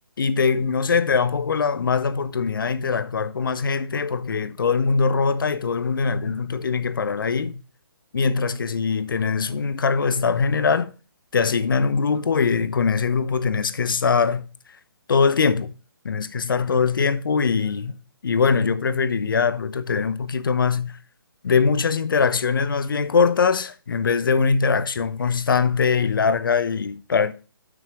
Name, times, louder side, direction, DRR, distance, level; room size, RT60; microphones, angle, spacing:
voice 1, 0.2-7.6 8.1-10.9 11.3-14.5 15.1-15.7 16.0-17.9 18.2-21.0 21.4-27.3, left 5 dB, 65° left, 0.9 m, -22 dB
7.5 x 6.2 x 5.0 m
figure-of-eight pair, 140°, 12 cm